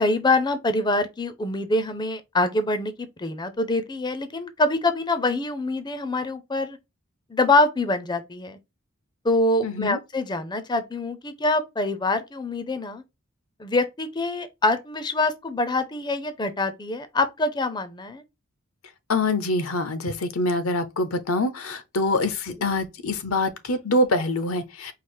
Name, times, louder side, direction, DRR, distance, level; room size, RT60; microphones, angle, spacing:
voice 1, 0.0-6.8 7.3-8.6 9.2-13.0 13.6-18.2, left 2 dB, 20° left, 0.5 m, -25 dB
voice 2, 9.6-10.0 19.1-24.9, left 2 dB, 75° left, 0.7 m, -25 dB
4.8 x 2.0 x 4.3 m
head